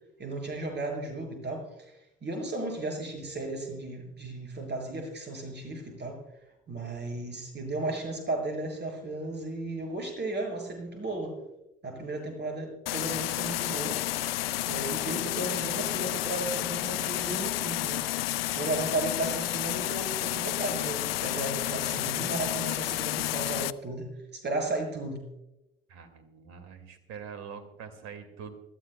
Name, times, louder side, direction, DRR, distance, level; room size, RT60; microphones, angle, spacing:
voice 1, 0.2-1.9 2.2-6.2 6.7-11.3 11.8-14.0 14.7-18.0 18.6-25.2, right 2 dB, 35° right, 2 dB, 6.9 m, -34 dB
sound 1, 12.9-23.7, left 15 dB, 80° left, 0.5 m, -31 dB
voice 2, 25.9-28.6, right 6 dB, 60° right, 9 dB, 2.2 m, -44 dB
27.5 x 14.0 x 2.2 m, 0.90 s
figure-of-eight pair, 55°, 29 cm